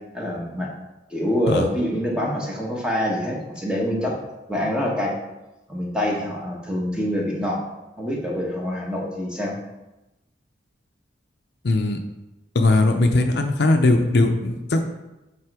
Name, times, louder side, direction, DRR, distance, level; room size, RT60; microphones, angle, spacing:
voice 1, 0.1-0.7 1.1-4.2 4.5-5.2 5.7-7.6 8.0-9.5, equal, 5° right, -2 dB, 1.2 m, -25 dB
voice 2, 11.6-12.0 12.5-14.8, left 2 dB, 60° left, 5 dB, 0.6 m, -19 dB
7.5 x 4.2 x 4.8 m, 1.0 s
head